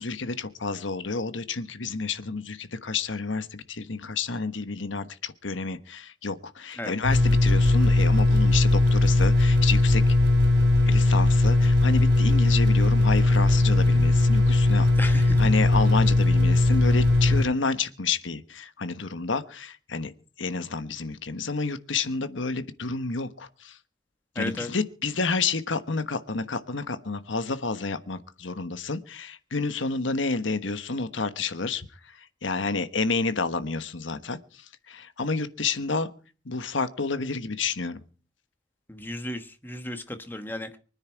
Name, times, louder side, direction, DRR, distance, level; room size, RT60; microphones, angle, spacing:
voice 1, 0.0-10.1 10.9-20.1 20.4-23.8 24.3-31.9 32.4-34.4 34.9-36.1 36.4-38.0, left 4 dB, 80° left, 11 dB, 1.3 m, -30 dB
sound 1, 7.0-17.4, left 2 dB, 65° right, 3.7 m, -19 dB
voice 2, 15.0-15.4 24.3-24.7 38.9-40.8, left 1 dB, 10° left, 8 dB, 1.3 m, -34 dB
24.5 x 9.8 x 4.6 m, 0.38 s
head